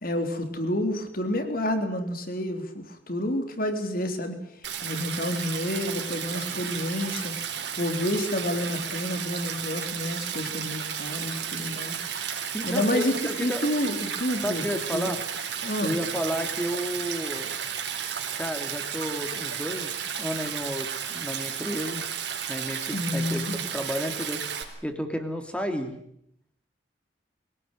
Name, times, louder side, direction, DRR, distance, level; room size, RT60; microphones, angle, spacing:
voice 1, 0.0-4.4 4.8-12.0 12.4-13.1 13.4-14.7 14.9-15.1 15.6-16.0 22.9-23.6, left 1 dB, 50° left, 7 dB, 3.6 m, -29 dB
Stream, 4.6-24.6, right 8 dB, 70° right, 3.8 m, -33 dB
voice 2, 12.5-13.6 14.4-15.2 15.8-17.5 18.4-22.0 22.5-23.5 23.7-24.4 24.8-25.9, equal, 5° left, 6 dB, 2.9 m, -32 dB
23.5 x 17.5 x 9.1 m, 0.72 s
head